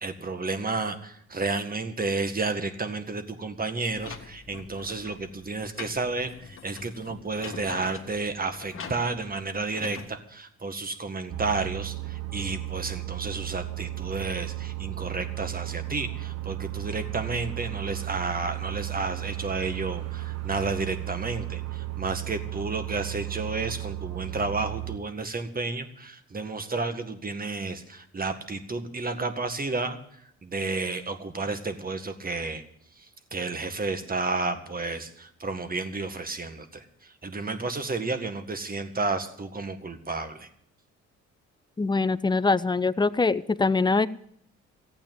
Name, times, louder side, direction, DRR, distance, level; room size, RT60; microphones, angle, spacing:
voice 1, 0.0-32.6 33.0-40.5, right 3 dB, 30° right, 8 dB, 1.8 m, -31 dB
sound 1, 3.9-10.1, left 5 dB, 45° left, 1.9 m, -43 dB
sound 2, 11.3-25.0, right 18 dB, 55° right, 1.1 m, -34 dB
voice 2, 41.8-44.1, left 3 dB, 15° left, 16 dB, 0.6 m, -23 dB
15.0 x 8.8 x 9.1 m, 0.66 s
cardioid pair, 90°, 30 cm